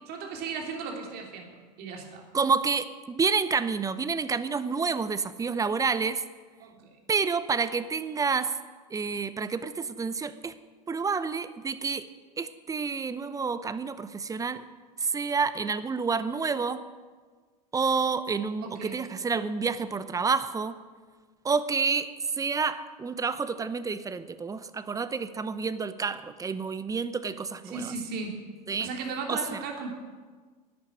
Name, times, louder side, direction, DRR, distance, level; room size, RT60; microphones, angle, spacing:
voice 1, 0.1-1.5 1.8-2.3 6.6-6.9 18.6-18.9 27.6-28.3 28.8-29.9, right 4 dB, 50° right, 2 dB, 3.2 m, -36 dB
voice 2, 2.3-6.2 7.1-8.6 8.9-10.5 10.9-12.1 12.4-14.7 15.0-16.9 17.7-20.8 21.4-27.9 28.7-28.9 29.3-29.6, right 5 dB, 15° right, 13 dB, 0.8 m, -29 dB
11.5 x 8.2 x 8.9 m, 1.4 s
hypercardioid pair, 90°, 21 cm